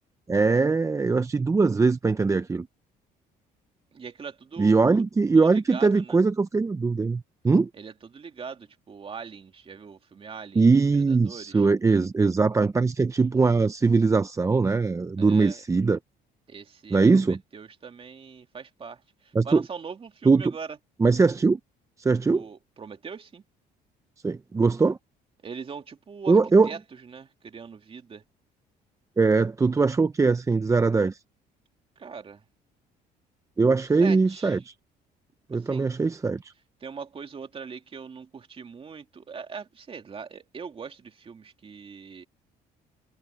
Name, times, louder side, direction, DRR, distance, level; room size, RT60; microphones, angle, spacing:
voice 1, 0.3-2.7 4.6-7.7 10.6-16.0 16.9-17.4 19.3-19.6 20.3-20.5 21.0-21.6 22.0-22.4 24.2-25.0 26.3-26.7 29.2-31.2 33.6-34.7 35.5-36.5, right 4 dB, 20° right, 0.6 m, -21 dB
voice 2, 3.9-5.0 5.3-6.2 7.7-11.7 15.2-15.6 16.5-20.8 22.3-23.4 25.4-26.4 26.6-28.2 32.0-32.4 34.0-34.6 35.5-35.9 36.8-42.3, right 6 dB, 35° right, 2.5 m, -41 dB
cardioid pair, 110°, 17 cm